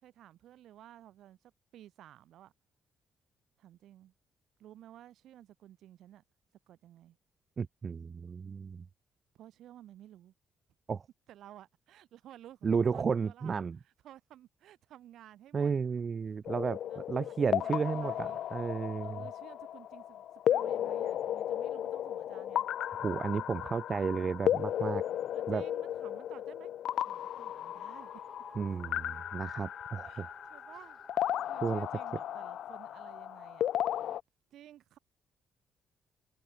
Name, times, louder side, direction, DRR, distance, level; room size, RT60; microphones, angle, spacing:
voice 1, 0.0-2.5 3.6-4.1 4.6-6.2 6.7-7.2 9.3-10.3 11.3-13.6 13.8-15.7 16.8-18.4 19.0-20.2 20.5-22.7 25.3-26.7 27.0-28.1 30.0-33.7 34.5-35.0, right 12 dB, 80° right, 4.5 m, -54 dB
voice 2, 7.6-8.8 10.9-11.0 12.6-13.8 15.5-19.2 23.0-25.0 25.5-25.7 28.6-30.3 31.6-31.9, right 5 dB, 40° right, 0.7 m, -33 dB
sound 1, 16.4-34.2, left 11 dB, 70° left, 0.6 m, -35 dB
sound 2, 27.5-31.8, equal, 5° right, 7.0 m, -54 dB
cardioid pair, 90°, 0 cm